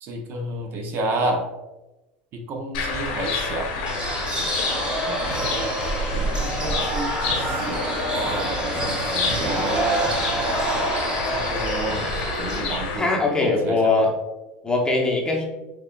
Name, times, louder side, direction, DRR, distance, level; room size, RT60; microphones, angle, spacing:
voice 1, 0.0-1.4 2.3-3.7 5.1-5.2 6.1-10.0 11.2-12.1 12.4-13.8, right 2 dB, 50° right, 3 dB, 0.7 m, -30 dB
sound 1, 2.7-13.0, left 3 dB, 75° left, 1.0 m, -28 dB
sound 2, 3.9-12.6, right 1 dB, 20° right, 0.9 m, -27 dB
voice 2, 13.0-14.2 14.6-15.5, left 3 dB, 15° left, -1 dB, 0.8 m, -21 dB
6.2 x 2.3 x 2.2 m, 1.1 s
supercardioid pair, 105°, 5 cm